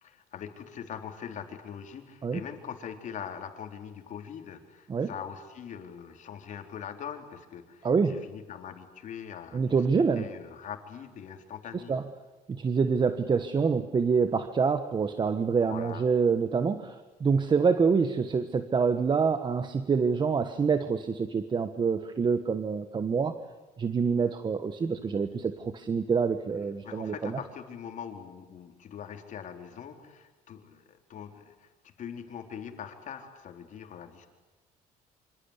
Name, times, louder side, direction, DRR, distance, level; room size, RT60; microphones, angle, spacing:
voice 1, 0.0-12.0 15.6-16.1 26.8-31.7 32.0-34.3, left 8 dB, 55° left, 5 dB, 4.2 m, -42 dB
voice 2, 7.8-8.2 9.5-10.3 11.9-12.0 12.5-23.3 23.8-27.3, right 5 dB, 30° right, 10 dB, 1.4 m, -26 dB
26.5 x 26.5 x 8.4 m, 1.2 s
cardioid pair, 120°, 15 cm